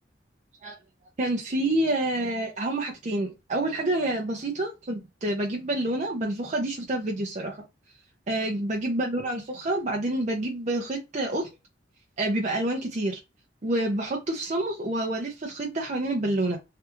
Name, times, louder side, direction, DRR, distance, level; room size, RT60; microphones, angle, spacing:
voice 1, 1.2-7.6 8.3-11.5 12.2-13.2 13.6-16.6, right 1 dB, 40° right, 0.6 m, -28 dB
3.3 x 2.4 x 2.9 m
head